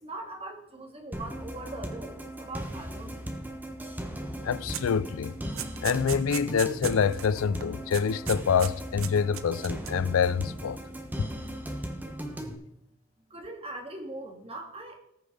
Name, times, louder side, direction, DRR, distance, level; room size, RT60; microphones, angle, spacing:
voice 1, 0.0-3.2 13.3-15.0, right 2 dB, 30° right, 2.1 m, -41 dB
sound 1, 1.1-12.5, equal, 10° right, 1.4 m, -37 dB
voice 2, 4.4-5.3 5.8-10.8 11.2-11.3, left 6 dB, 80° left, 0.4 m, -26 dB
sound 2, 4.7-4.9 5.3-7.3 7.5-7.7 7.9-8.7 9.0-10.1, right 11 dB, 85° right, 0.8 m, -37 dB
19.5 x 6.6 x 3.9 m
head